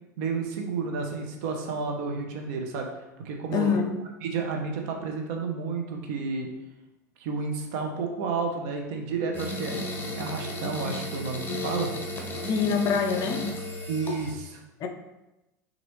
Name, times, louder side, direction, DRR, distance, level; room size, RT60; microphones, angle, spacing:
voice 1, 0.2-2.9 3.2-3.8 4.2-6.5 7.2-9.7 10.1-11.9 13.9-14.6, right 4 dB, 60° right, 2 dB, 0.9 m, -31 dB
voice 2, 3.5-4.1 12.4-13.5 14.8-14.9, left 6 dB, 40° left, 6 dB, 0.6 m, -25 dB
sound 1, 9.3-14.3, left 1 dB, 20° left, 1.0 m, -34 dB
6.0 x 2.7 x 3.1 m, 0.97 s
hypercardioid pair, 80°, 10 cm